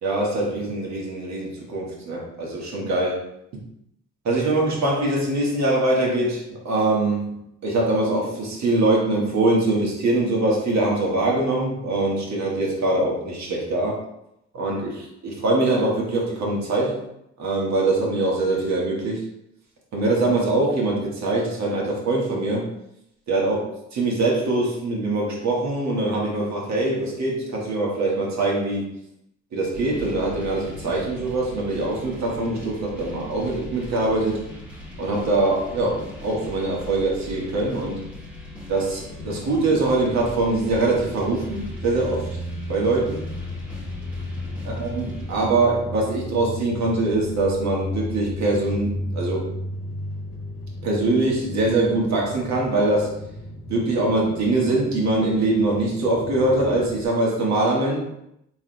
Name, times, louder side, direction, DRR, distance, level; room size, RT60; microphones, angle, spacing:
voice 1, 0.0-3.2 4.2-14.0 14.5-17.0 17.4-19.2 19.9-22.7 23.3-28.9 29.5-34.4 35.0-38.0 38.7-42.4 42.7-43.3 44.6-49.5 50.8-53.2 53.7-58.0, right 2 dB, 55° right, -3 dB, 1.6 m, -23 dB
sound 1, 29.7-45.5, left 1 dB, 5° right, 1.3 m, -39 dB
sound 2, 39.2-57.0, left 1 dB, 65° left, 0.9 m, -35 dB
4.7 x 3.6 x 2.3 m, 0.81 s
supercardioid pair, 65°, 32 cm